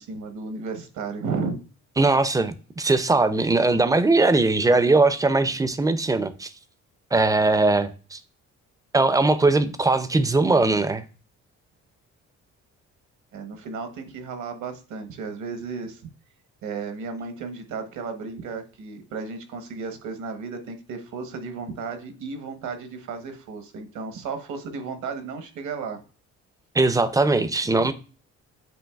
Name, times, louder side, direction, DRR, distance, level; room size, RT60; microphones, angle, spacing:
voice 1, 0.0-1.6 13.3-16.0 16.6-26.0 27.7-27.9, right 5 dB, 75° right, 0.9 m, -34 dB
voice 2, 2.0-6.5 7.1-8.2 8.9-11.0 26.7-27.9, right 3 dB, 10° right, 0.4 m, -20 dB
7.7 x 2.8 x 2.3 m
cardioid pair, 90°, 30 cm